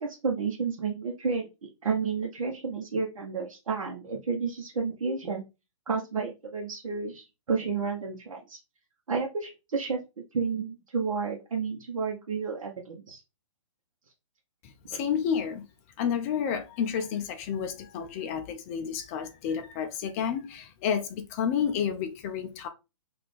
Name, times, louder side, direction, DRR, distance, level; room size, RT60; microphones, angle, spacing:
voice 1, 0.0-5.4 5.9-8.6 9.1-10.0 10.3-13.2 14.9-15.0, right 5 dB, 90° right, 0.8 m, -31 dB
voice 2, 14.9-15.6 16.0-22.7, left 7 dB, 25° left, 0.4 m, -30 dB
4.0 x 2.5 x 3.2 m
hypercardioid pair, 145°, 17 cm